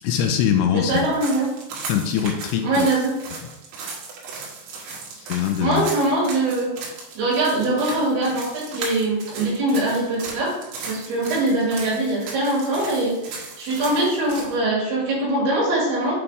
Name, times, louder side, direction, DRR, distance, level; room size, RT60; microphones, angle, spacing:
voice 1, 0.0-1.1 1.9-2.9 5.2-5.9, left 9 dB, 80° left, 5 dB, 2.6 m, -22 dB
voice 2, 0.7-1.5 2.6-3.1 5.6-6.7 7.2-10.5 10.8-16.1, right 2 dB, 65° right, -5 dB, 4.1 m, -22 dB
sound 1, 0.9-14.5, right 4 dB, 80° right, 3.7 m, -36 dB
8.1 x 4.9 x 3.6 m, 0.98 s
omnidirectional pair, 5.0 m